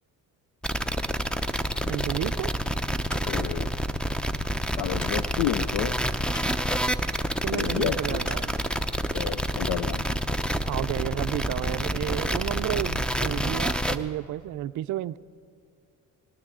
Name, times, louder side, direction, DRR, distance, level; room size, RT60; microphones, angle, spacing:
sound 1, 0.6-14.0, equal, ahead, 0.6 m, -28 dB
voice 1, 1.9-2.5 7.4-8.5 10.7-15.2, right 13 dB, 50° right, 12 dB, 0.4 m, -31 dB
sound 2, 2.7-8.5, left 1 dB, 30° left, 2.0 m, -48 dB
voice 2, 3.2-3.7 4.8-6.0 7.5-8.2 9.1-10.2, left 12 dB, 80° left, 12 dB, 0.6 m, -30 dB
19.5 x 17.5 x 3.7 m, 2.4 s
cardioid pair, 80°, 38 cm